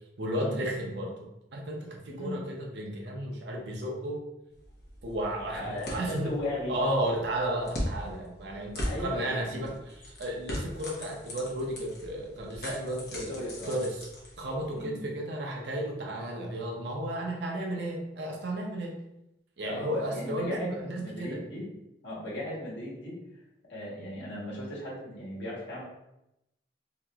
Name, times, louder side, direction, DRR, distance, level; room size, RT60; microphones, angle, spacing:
voice 1, 0.2-4.2 5.0-6.3 6.7-9.7 10.2-14.0 14.4-19.0 19.6-21.4, right 1 dB, 70° right, 0 dB, 0.6 m, -33 dB
voice 2, 2.1-2.4 5.5-6.8 8.8-9.7 13.1-13.8 14.7-15.1 19.6-21.6 22.0-23.1 23.7-25.8, left 1 dB, 85° left, -6 dB, 1.1 m, -37 dB
sound 1, 4.5-14.8, equal, 60° left, 0.8 m, -40 dB
2.9 x 2.8 x 2.3 m, 0.89 s
head